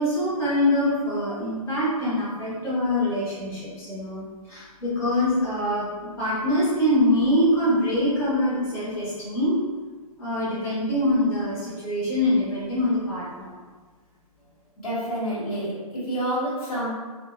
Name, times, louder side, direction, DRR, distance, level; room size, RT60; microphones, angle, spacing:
voice 1, 0.0-4.2 4.5-9.6 10.2-13.6, left 1 dB, 15° left, -11 dB, 1.0 m, -24 dB
voice 2, 14.8-16.9, right 1 dB, 75° left, -9 dB, 1.3 m, -28 dB
3.8 x 2.1 x 2.3 m, 1.4 s
figure-of-eight pair, 130°, 19 cm